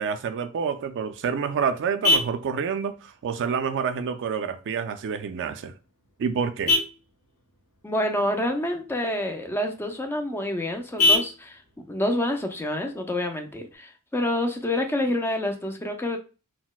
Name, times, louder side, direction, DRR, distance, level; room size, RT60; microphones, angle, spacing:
voice 1, 0.0-5.7 6.2-6.8, right 6 dB, 55° right, 0.3 m, -28 dB
Vehicle horn car horn honking, 0.8-13.8, left 2 dB, 75° left, 0.9 m, -31 dB
voice 2, 7.8-16.2, left 1 dB, 10° left, 0.4 m, -28 dB
4.0 x 2.1 x 2.3 m
head